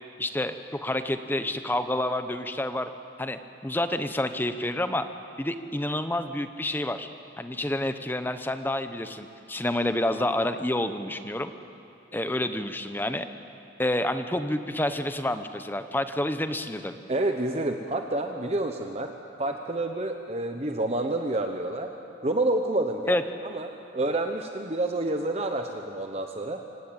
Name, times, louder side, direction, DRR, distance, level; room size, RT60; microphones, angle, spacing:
voice 1, 0.2-2.9 3.2-5.1 5.4-7.1 7.4-11.5 12.1-13.3 13.8-17.0 23.1-23.2, left 1 dB, 10° left, 9 dB, 0.8 m, -28 dB
voice 2, 17.1-19.1 19.4-21.9 22.2-26.6, right 2 dB, 35° right, 4 dB, 1.0 m, -28 dB
25.5 x 16.0 x 8.9 m, 2.7 s
head